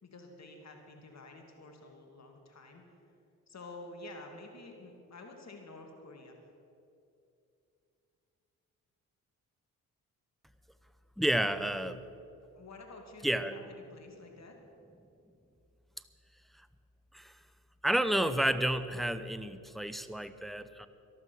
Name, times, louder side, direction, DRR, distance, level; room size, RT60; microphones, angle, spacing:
voice 1, 0.0-3.1 3.5-6.4 12.5-14.6, left 2 dB, 40° left, 3 dB, 2.5 m, -50 dB
voice 2, 11.2-12.0 13.2-13.5 17.1-17.3 17.8-20.9, right 1 dB, ahead, 12 dB, 0.7 m, -30 dB
12.5 x 12.5 x 6.3 m, 2.7 s
hypercardioid pair, 45°, 39 cm